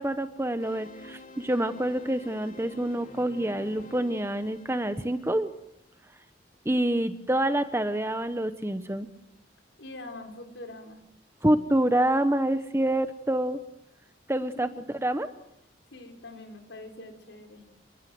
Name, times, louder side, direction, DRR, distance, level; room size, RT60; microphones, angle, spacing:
voice 1, 0.0-5.5 6.6-9.1 11.4-13.6 14.3-15.3, right 1 dB, 15° right, 10 dB, 1.0 m, -27 dB
sound 1, 0.6-5.8, left 1 dB, 45° left, 4.0 m, -48 dB
voice 2, 9.8-11.0 14.4-14.7 15.9-17.6, left 2 dB, 85° left, 5 dB, 5.0 m, -44 dB
29.0 x 22.5 x 7.9 m, 0.82 s
head